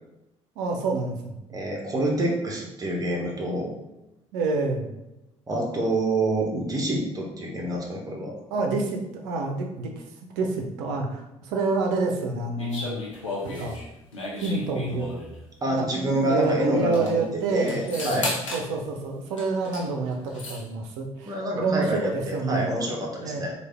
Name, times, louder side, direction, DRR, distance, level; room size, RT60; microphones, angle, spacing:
voice 1, 0.6-1.4 4.3-4.9 8.5-9.9 10.4-13.8 14.4-15.1 15.7-22.7 23.2-23.4, right 3 dB, 65° right, 3 dB, 0.6 m, -28 dB
voice 2, 1.5-3.7 5.5-8.3 15.6-17.2 17.5-18.3 21.3-23.5, right 1 dB, 25° right, -1 dB, 1.0 m, -27 dB
sound 1, 12.6-15.4 16.4-16.5 16.8-17.1 17.7-18.7 19.4-19.9 20.1-20.6, left 2 dB, 85° left, 0.6 m, -34 dB
3.3 x 2.4 x 3.3 m, 0.95 s
figure-of-eight pair, 50°, 16 cm